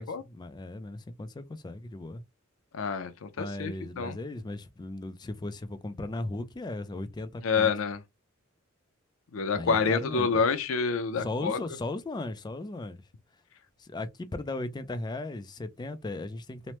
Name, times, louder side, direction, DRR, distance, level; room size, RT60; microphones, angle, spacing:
voice 1, 0.0-2.2 3.4-7.7 9.5-10.3 11.2-13.0 13.8-16.8, left 2 dB, 20° left, 0.3 m, -37 dB
voice 2, 2.7-4.2 7.4-8.0 9.3-11.6, left 5 dB, 75° left, 0.5 m, -28 dB
3.0 x 2.0 x 2.9 m
head